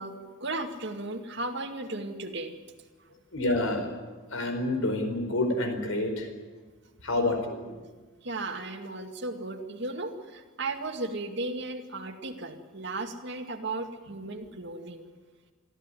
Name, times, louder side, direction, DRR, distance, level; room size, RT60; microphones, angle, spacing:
voice 1, 0.0-2.6 8.2-15.1, right 2 dB, 55° right, 5 dB, 2.1 m, -35 dB
voice 2, 3.3-3.9 4.3-6.3 7.0-7.8, left 2 dB, 80° left, 6 dB, 4.7 m, -28 dB
24.5 x 14.5 x 9.9 m, 1.3 s
head